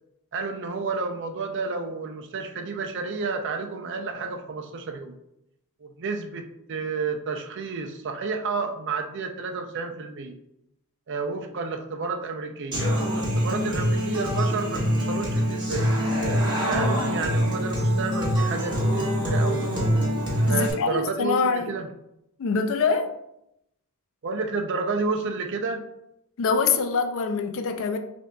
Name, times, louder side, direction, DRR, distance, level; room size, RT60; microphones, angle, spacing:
voice 1, 0.3-5.2 5.8-10.4 11.1-15.9 16.7-19.7 20.5-21.9 24.2-25.8, right 4 dB, 55° right, 0.5 m, -31 dB
Human voice / Acoustic guitar, 12.7-20.7, equal, 20° right, 1.2 m, -24 dB
voice 2, 20.5-21.7 22.4-23.1 26.4-28.0, left 5 dB, 65° left, 0.4 m, -24 dB
6.3 x 2.6 x 2.3 m
head